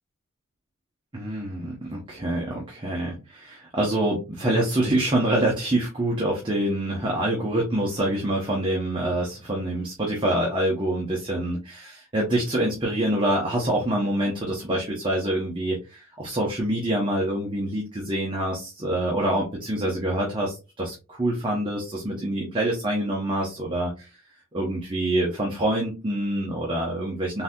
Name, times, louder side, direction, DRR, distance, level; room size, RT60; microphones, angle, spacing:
voice 1, 1.1-24.1 24.5-27.4, right 1 dB, 25° right, -2 dB, 0.8 m, -26 dB
3.9 x 2.7 x 2.2 m, 0.29 s
head